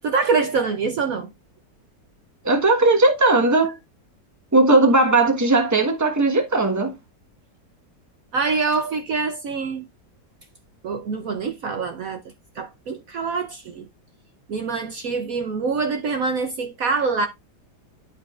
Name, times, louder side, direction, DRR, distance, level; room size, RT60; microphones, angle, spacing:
voice 1, 0.0-1.3 8.3-9.9 10.8-12.2 12.6-13.9 14.5-17.3, right 4 dB, 60° right, 1.0 m, -25 dB
voice 2, 2.4-3.8 4.5-6.9, right 2 dB, 10° right, 1.2 m, -17 dB
11.5 x 5.2 x 2.4 m
omnidirectional pair, 1.8 m